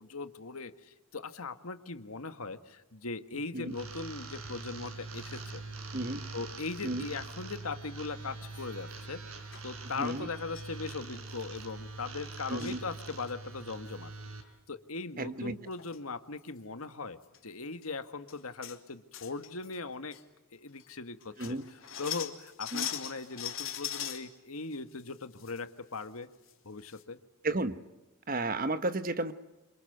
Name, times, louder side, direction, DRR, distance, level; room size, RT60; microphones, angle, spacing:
voice 1, 0.0-5.6 6.3-9.2 9.6-14.1 14.7-20.2 20.5-26.3 26.6-27.2, left 3 dB, 80° left, 9 dB, 1.7 m, -40 dB
sound 1, 3.7-14.4, right 3 dB, 75° right, 5.2 m, -44 dB
sound 2, 8.5-8.9 9.5-9.6 10.5-10.7 11.1-11.2 11.4-11.6 12.3-12.8 13.2-13.6 15.4-15.5 15.7-16.0 16.4-16.5 17.2-17.4 17.8-17.9 18.3-18.8 19.1-19.8 20.1-20.2 20.8-20.9 21.2-24.2 24.7-25.6 25.9-26.0 26.5-26.6 26.8-27.0, left 10 dB, 60° left, 3.3 m, -40 dB
voice 2, 10.0-10.3 12.5-12.8 15.2-15.5 21.4-21.6 22.7-22.9 27.4-27.7 28.3-29.3, right 2 dB, 40° right, 11 dB, 1.3 m, -32 dB
28.0 x 26.5 x 8.1 m, 1.0 s
head